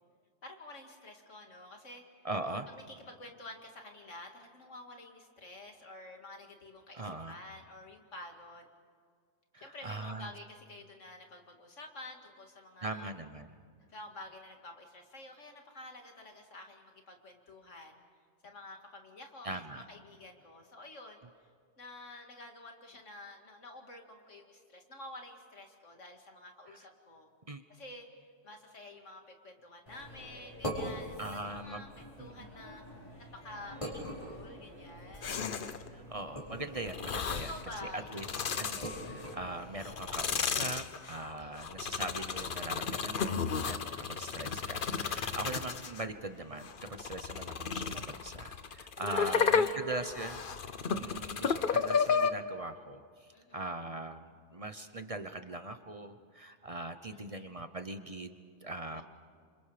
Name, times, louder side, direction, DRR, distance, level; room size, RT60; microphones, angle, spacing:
voice 1, 0.4-2.0 2.7-8.7 9.6-13.1 13.9-18.0 18.4-21.2 21.8-27.3 27.7-28.1 28.4-32.8 33.3-35.5 37.4-38.6 41.4-41.9 49.1-50.4 50.8-51.2 53.3-53.7 57.1-57.5 58.9-59.0, left 2 dB, 90° left, 3 dB, 2.7 m, -49 dB
voice 2, 2.2-2.7 6.9-7.4 9.5-10.3 12.8-13.5 19.4-19.8 26.7-26.8 27.5-27.6 31.2-31.8 32.2-32.5 35.9-37.5 37.9-38.3 38.6-50.4 50.9-59.0, right 2 dB, 30° right, 9 dB, 0.9 m, -41 dB
sound 1, 29.9-40.3, equal, 25° left, 4.9 m, -44 dB
sound 2, 35.2-35.9 36.9-37.6 38.1-39.3 39.8-46.1 46.6-52.3, left 6 dB, 50° left, 1.0 m, -33 dB
28.5 x 26.5 x 5.1 m, 2.1 s
omnidirectional pair, 1.2 m